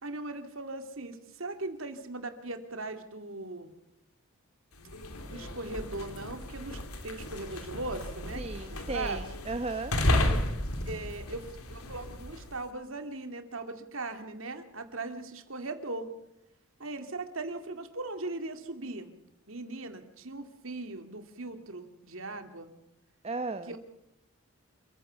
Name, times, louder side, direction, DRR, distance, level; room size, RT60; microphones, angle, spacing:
voice 1, 0.0-3.7 5.3-8.4 8.7-9.2 10.3-10.4 10.9-16.1 16.8-19.1 19.5-22.7 23.7-23.8, right 2 dB, 60° right, 7 dB, 2.4 m, -39 dB
sound 1, 4.8-12.6, left 1 dB, 80° left, 3.1 m, -33 dB
voice 2, 8.3-9.9 23.2-23.8, right 3 dB, 30° right, 10 dB, 0.9 m, -35 dB
28.0 x 15.5 x 6.9 m, 0.90 s
head